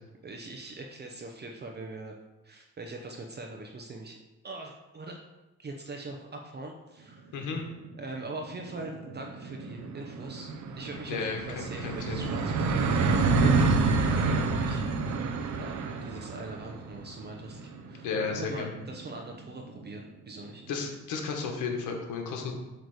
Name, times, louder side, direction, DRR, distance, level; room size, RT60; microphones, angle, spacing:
voice 1, 0.2-2.1 2.4-4.2 4.4-5.2 5.6-7.4 8.0-14.9 15.6-20.6, right 2 dB, 35° right, 2 dB, 0.8 m, -42 dB
voice 2, 7.3-7.6 11.1-11.4 11.8-12.3 18.0-18.7 20.7-22.5, left 5 dB, 85° left, 2 dB, 1.5 m, -33 dB
sound 1, 7.6-7.7 8.0-8.1 8.3-19.8, right 3 dB, 70° right, 0.8 m, -29 dB
Acoustic guitar / Strum, 13.6-17.8, left 6 dB, 35° left, 0.7 m, -48 dB
8.2 x 3.3 x 6.5 m, 1.1 s
cardioid pair, 90°, 30 cm